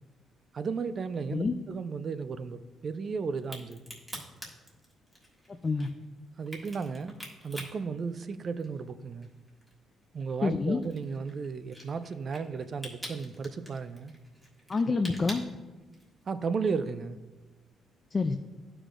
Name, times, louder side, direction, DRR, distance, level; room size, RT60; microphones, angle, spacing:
voice 1, 0.5-3.9 6.4-7.2 7.4-9.3 10.1-14.1 16.3-17.2, right 5 dB, 45° right, 12 dB, 0.4 m, -34 dB
Crack, 3.4-8.9 9.2-16.2, equal, 10° right, 1.6 m, -45 dB
voice 2, 10.4-10.8 14.7-15.4 18.1-18.3, left 4 dB, 30° left, 6 dB, 0.3 m, -27 dB
11.5 x 4.9 x 2.5 m, 1.2 s
cardioid pair, 90°, 0 cm